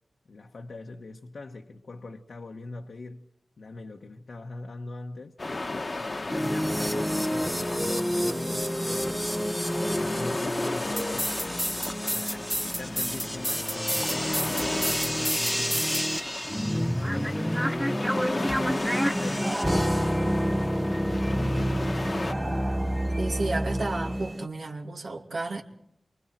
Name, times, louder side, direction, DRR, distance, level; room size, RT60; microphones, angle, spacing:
voice 1, 0.3-3.3 3.6-5.3 6.0-9.4 9.9-11.8 12.1-16.1 16.6-20.4 21.0-21.9, left 3 dB, 70° left, 1.2 m, -42 dB
sound 1, 5.4-22.3, left 2 dB, 40° left, 1.3 m, -36 dB
sound 2, 6.3-24.3, equal, ahead, 0.9 m, -28 dB
sound 3, 18.8-24.5, right 1 dB, 25° right, 1.6 m, -34 dB
voice 2, 23.2-25.6, right 3 dB, 70° right, 2.7 m, -32 dB
29.5 x 24.5 x 4.5 m
wide cardioid pair, 80°, 0 cm